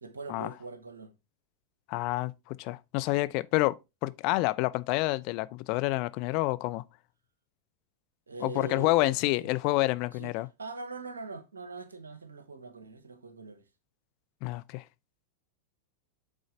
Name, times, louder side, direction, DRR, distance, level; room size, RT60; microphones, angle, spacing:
voice 1, 0.0-1.1 8.3-9.1 9.4-9.5 10.2-10.3 10.6-13.6, right 3 dB, 75° right, 1.0 m, -42 dB
voice 2, 1.9-3.8 4.0-6.8 8.4-10.5 14.4-14.8, left 20 dB, 45° left, 0.4 m, -28 dB
8.2 x 3.8 x 3.7 m
figure-of-eight pair, 90°, 0 cm